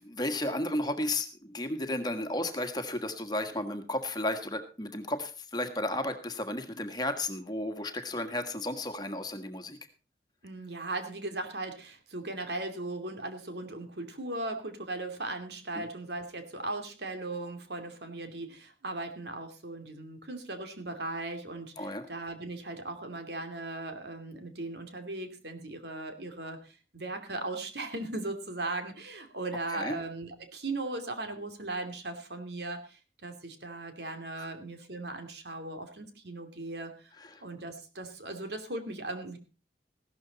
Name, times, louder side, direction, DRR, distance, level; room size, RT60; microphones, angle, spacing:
voice 1, 0.0-9.8 15.7-15.9 21.8-22.1 29.7-30.0 34.4-34.5 37.2-37.4, left 1 dB, 20° left, 7 dB, 1.6 m, -33 dB
voice 2, 10.4-37.1 37.4-39.4, right 2 dB, 70° right, 6 dB, 2.7 m, -38 dB
16.0 x 13.0 x 4.1 m, 0.33 s
head